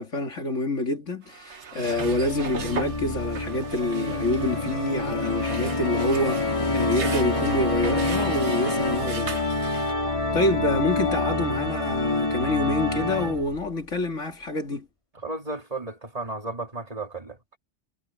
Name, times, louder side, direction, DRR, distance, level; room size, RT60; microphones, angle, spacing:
voice 1, 0.0-9.4 10.3-14.9, left 2 dB, 85° left, 3.0 m, -27 dB
sound 1, 1.2-9.9, right 5 dB, 65° right, 1.5 m, -38 dB
Organ, 1.8-13.7, left 2 dB, 25° left, 3.0 m, -27 dB
voice 2, 15.2-17.4, right 2 dB, 30° right, 2.5 m, -33 dB
omnidirectional pair, 1.2 m